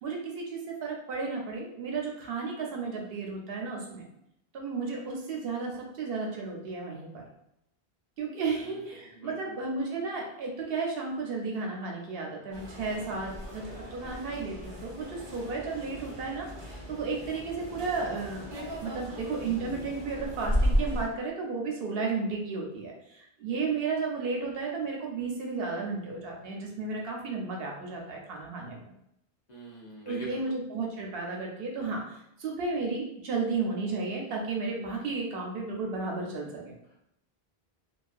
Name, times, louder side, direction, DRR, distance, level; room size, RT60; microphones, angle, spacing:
voice 1, 0.0-4.1 4.5-7.2 8.2-16.5 16.9-28.8 30.1-36.8, right 4 dB, 70° right, 0 dB, 0.8 m, -33 dB
voice 2, 8.6-9.5 29.5-30.6 31.8-32.0 36.9-37.0, right 2 dB, 50° left, -4 dB, 0.6 m, -45 dB
sound 1, 12.5-21.1, equal, 35° right, 0.5 m, -34 dB
2.3 x 2.3 x 2.4 m, 0.78 s
omnidirectional pair, 1.1 m